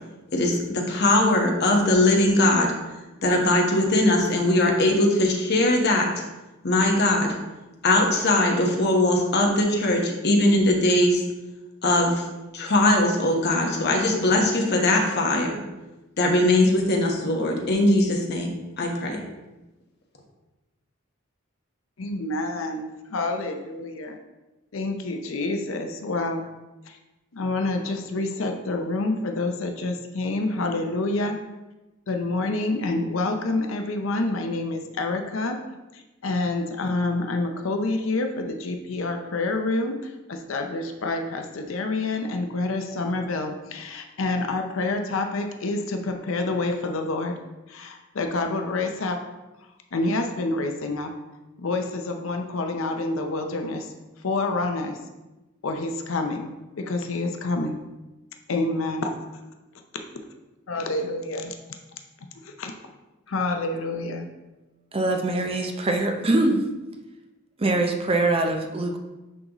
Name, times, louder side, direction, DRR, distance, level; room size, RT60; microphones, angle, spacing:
voice 1, 0.3-2.7 3.2-6.1 6.6-7.3 7.8-11.2 11.8-12.1 12.5-15.6 16.2-19.2, left 1 dB, 55° left, 1 dB, 1.1 m, -20 dB
voice 2, 22.0-24.2 24.7-26.5 26.9-27.0 27.3-31.4 32.1-35.6 35.9-47.3 47.7-49.2 49.9-51.1 51.6-53.9 54.2-55.0 55.6-57.8 58.5-59.2 60.7-61.5 62.4-62.7 63.3-64.3, left 2 dB, 70° left, 4 dB, 0.6 m, -27 dB
voice 3, 64.9-66.6 67.6-69.0, right 2 dB, 30° right, 4 dB, 0.6 m, -23 dB
9.8 x 3.9 x 3.0 m, 1.1 s
head